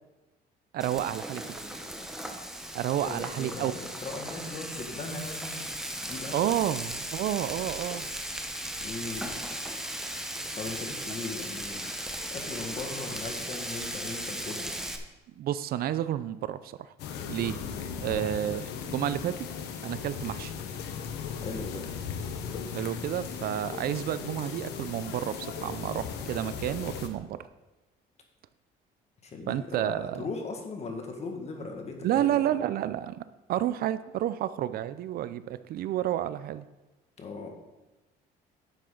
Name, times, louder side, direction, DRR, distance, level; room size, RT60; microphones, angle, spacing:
voice 1, 0.7-1.6 2.7-3.7 6.3-8.1 15.4-16.9 17.3-17.6 18.0-19.5 19.8-20.5 22.7-27.4 29.5-30.3 32.0-36.7, right 12 dB, 65° right, 14 dB, 0.5 m, -30 dB
Frying (food), 0.8-15.0, right 1 dB, 5° right, 1.0 m, -37 dB
voice 2, 3.0-5.7 6.0-6.4 8.8-9.4 10.6-11.9 12.3-14.9 18.0-18.2 21.4-21.8 29.2-32.5 37.2-37.5, left 3 dB, 40° left, 3 dB, 1.8 m, -38 dB
sound 1, 17.0-27.1, left 7 dB, 85° left, 1.1 m, -37 dB
10.5 x 7.6 x 3.9 m, 1.1 s
cardioid pair, 110°, 17 cm